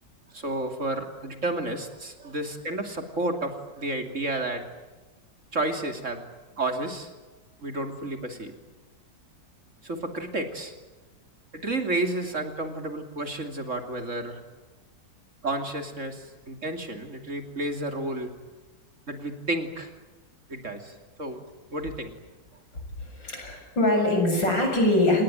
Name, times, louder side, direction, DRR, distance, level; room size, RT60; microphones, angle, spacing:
voice 1, 0.3-4.7 5.5-6.2 6.6-7.1 7.6-8.5 9.8-10.7 11.5-14.4 15.4-18.3 19.1-19.9 20.5-21.4 21.7-22.1, right 2 dB, 40° right, 6 dB, 3.1 m, -31 dB
voice 2, 23.0-25.2, left 1 dB, 80° left, 3 dB, 8.0 m, -23 dB
28.5 x 20.0 x 9.1 m, 1.2 s
omnidirectional pair, 2.0 m